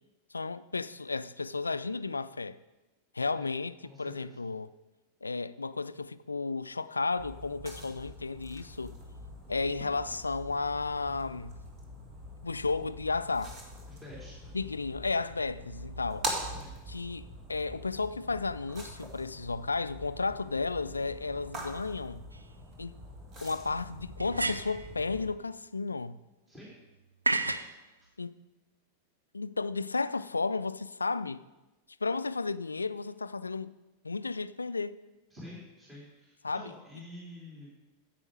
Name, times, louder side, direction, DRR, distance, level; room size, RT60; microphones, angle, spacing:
voice 1, 0.3-2.6 3.1-4.7 5.2-9.0 9.5-11.6 12.4-13.6 14.5-16.3 16.9-22.2 22.8-23.0 23.4-26.2 28.2-28.3 29.3-31.4 32.0-33.8 34.0-35.0 36.4-36.7, left 4 dB, 80° left, 0.3 m, -33 dB
voice 2, 3.8-4.4 13.9-14.5 16.5-16.8 26.5-26.7 27.6-27.7 35.3-37.7, left 1 dB, 15° right, 3.1 m, -48 dB
sound 1, 7.2-25.3, right 1 dB, 30° right, 2.3 m, -44 dB
sound 2, 22.3-22.4 24.2-24.9 27.3-27.7, right 2 dB, 80° right, 0.4 m, -30 dB
9.7 x 8.2 x 4.8 m
figure-of-eight pair, 90°, 0 cm